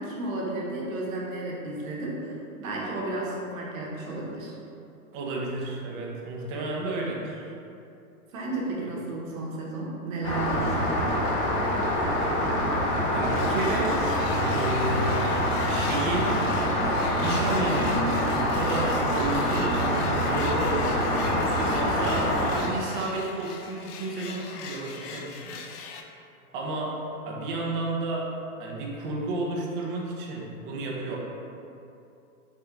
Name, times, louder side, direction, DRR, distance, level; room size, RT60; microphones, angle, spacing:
voice 1, 0.0-4.5 8.3-11.0, right 2 dB, 60° right, -3 dB, 1.1 m, -33 dB
voice 2, 5.1-7.5 8.8-8.9 13.1-14.1 14.4-16.4 16.9-19.9 20.2-25.6 26.5-31.2, right 2 dB, 35° right, -2 dB, 0.6 m, -32 dB
Rain, 10.2-22.6, equal, 25° left, 0.4 m, -25 dB
sound 1, 13.2-26.0, left 5 dB, 85° left, 0.5 m, -40 dB
3.5 x 2.7 x 3.6 m, 2.7 s
hypercardioid pair, 135°, 45 cm